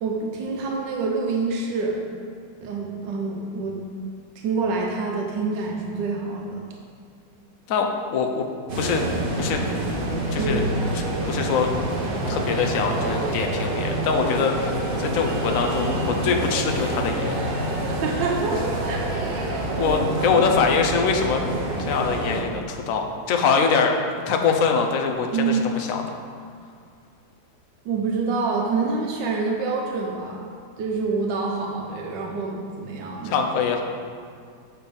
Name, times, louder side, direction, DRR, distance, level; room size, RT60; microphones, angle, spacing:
voice 1, 0.0-2.0 2.6-3.8 4.4-6.6 10.4-10.7 17.8-19.0 19.3-19.5 20.2-20.5 25.3-25.6 27.8-30.5 30.8-33.4, right 4 dB, 90° right, 0 dB, 1.4 m, -27 dB
voice 2, 7.7-8.5 8.8-9.0 9.4-9.6 10.3-10.6 11.3-11.7 12.3-17.3 19.8-21.4 21.9-24.0 24.3-26.2 33.2-33.8, left 5 dB, 60° left, 3 dB, 0.9 m, -23 dB
sound 1, 8.7-22.4, right 1 dB, 40° right, 0.8 m, -27 dB
6.8 x 4.5 x 5.2 m, 2.2 s
omnidirectional pair, 1.9 m